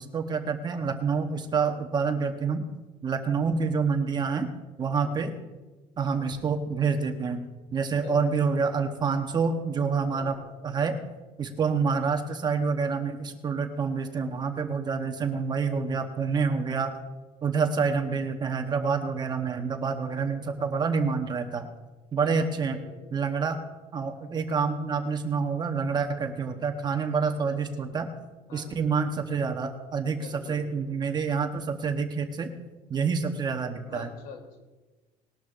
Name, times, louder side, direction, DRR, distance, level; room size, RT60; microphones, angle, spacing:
voice 1, 0.0-2.6 3.0-4.5 4.8-5.3 6.0-7.4 7.7-11.0 11.4-16.9 17.4-21.7 22.1-22.8 23.1-23.6 23.9-28.1 28.5-32.5 32.9-34.1, right 5 dB, 25° right, 5 dB, 0.9 m, -27 dB
voice 2, 5.0-5.4 8.0-8.2 10.1-10.5 20.0-20.5 22.2-22.5 22.7-23.3 27.2-27.6 28.5-29.0 30.1-31.0 33.8-34.6, left 5 dB, 65° left, 3 dB, 3.1 m, -46 dB
19.5 x 12.5 x 2.5 m, 1.2 s
cardioid pair, 165°, 16 cm